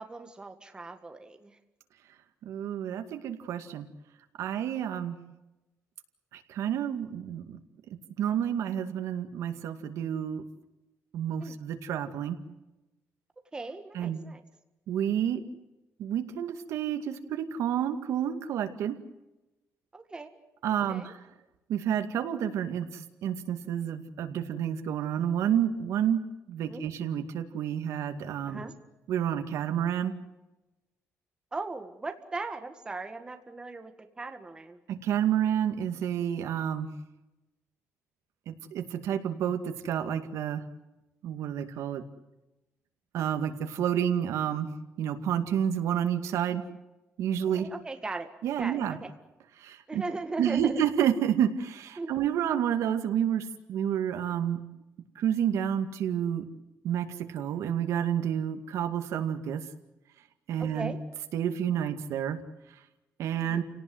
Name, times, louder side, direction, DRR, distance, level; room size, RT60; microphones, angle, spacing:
voice 1, 0.0-1.6 11.4-11.6 13.5-14.4 19.9-20.3 20.9-21.1 26.6-26.8 28.5-28.7 31.5-34.8 47.4-48.3 48.6-49.1 49.9-50.8 52.0-52.1 60.6-61.0 63.4-63.6, right 3 dB, 15° right, 7 dB, 1.9 m, -38 dB
voice 2, 2.4-3.9 4.4-5.2 6.3-7.6 8.2-10.4 11.1-12.4 13.9-14.2 14.9-15.4 16.0-19.0 20.6-21.2 21.7-22.9 23.2-26.2 26.5-28.6 29.1-30.1 34.9-36.9 38.5-40.6 41.2-42.0 43.1-44.7 45.0-46.6 47.2-47.7 48.4-49.0 49.6-50.0 50.4-54.6 55.2-56.4 56.8-59.6 60.5-60.9 61.3-62.4 63.2-63.6, right 9 dB, 75° right, 8 dB, 2.2 m, -29 dB
30.0 x 18.0 x 8.0 m, 1.0 s
cardioid pair, 165°, 5 cm